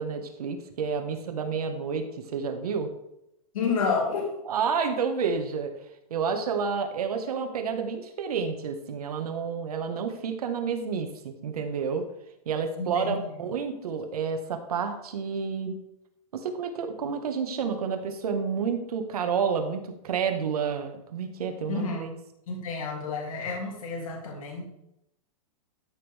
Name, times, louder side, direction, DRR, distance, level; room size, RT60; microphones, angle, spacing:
voice 1, 0.0-2.1 2.3-2.9 4.5-5.7 6.1-12.0 12.4-15.8 16.3-22.1, right 6 dB, 80° right, 6 dB, 1.6 m, -30 dB
voice 2, 3.5-4.3 12.8-13.2 21.7-22.2 22.5-24.6, left 4 dB, 65° left, -1 dB, 2.9 m, -30 dB
13.0 x 6.4 x 3.5 m, 0.82 s
supercardioid pair, 180°, 19 cm